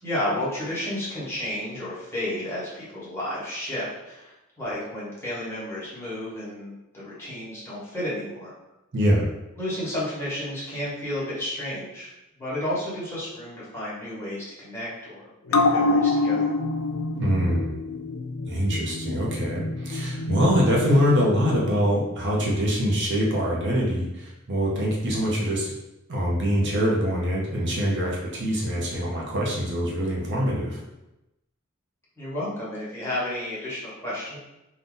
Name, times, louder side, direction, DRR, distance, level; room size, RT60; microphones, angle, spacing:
voice 1, 0.0-8.5 9.6-12.1 12.4-16.5 32.2-34.4, left 1 dB, 10° left, -9 dB, 1.1 m, -32 dB
voice 2, 8.9-9.3 17.1-17.8 18.4-25.7 26.1-30.8, equal, 60° right, -3 dB, 0.7 m, -24 dB
sound 1, 15.5-22.4 22.7-22.8, left 2 dB, 80° left, 0.3 m, -27 dB
2.6 x 2.4 x 3.7 m, 0.94 s
head